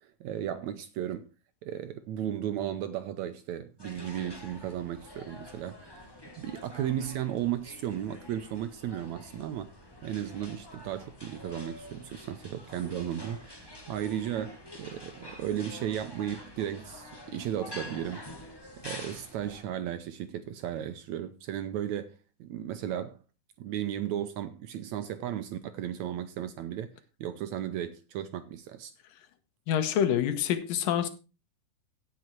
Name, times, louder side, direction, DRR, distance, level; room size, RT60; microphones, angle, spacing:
voice 1, 0.0-1.3 1.6-5.9 6.4-9.7 10.0-18.3 18.8-23.2 23.6-26.9 27.2-28.9, right 10 dB, 75° right, 1.8 m, -35 dB
sound 1, 3.8-19.6, left 1 dB, 25° left, 0.5 m, -47 dB
voice 2, 29.7-31.1, left 9 dB, 90° left, 2.9 m, -26 dB
16.5 x 6.3 x 4.5 m
omnidirectional pair, 3.9 m